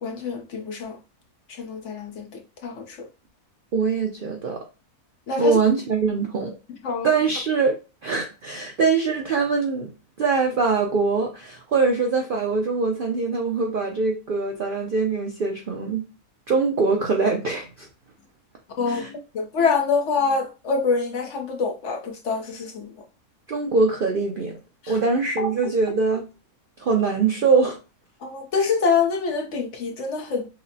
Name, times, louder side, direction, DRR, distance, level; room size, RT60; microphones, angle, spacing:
voice 1, 0.0-1.0 1.5-3.1 5.3-5.6 6.8-7.1 18.8-22.9 24.8-25.0 25.4-25.7 28.2-30.5, left 5 dB, 60° left, 0.9 m, -26 dB
voice 2, 3.7-4.6 5.4-6.5 7.0-9.9 10.2-16.0 16.5-17.9 18.9-19.1 23.5-24.6 24.9-26.3 26.8-27.8, right 4 dB, 60° right, 0.5 m, -23 dB
5.7 x 2.0 x 2.7 m
omnidirectional pair, 1.6 m